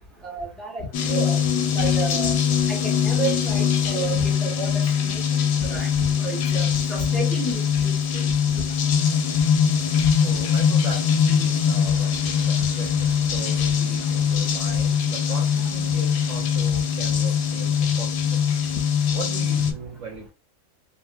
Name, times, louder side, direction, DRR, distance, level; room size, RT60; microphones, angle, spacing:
voice 1, 0.2-1.4 1.7-2.4 2.7-4.7 5.0-5.1 5.6-5.9 6.2-8.2, right 3 dB, ahead, 1.2 m, -31 dB
sound 1, 0.9-19.7, left 7 dB, 75° left, 1.0 m, -22 dB
voice 2, 10.2-18.5 19.1-20.3, right 4 dB, 60° right, 1.1 m, -38 dB
3.4 x 2.7 x 2.3 m
omnidirectional pair, 1.5 m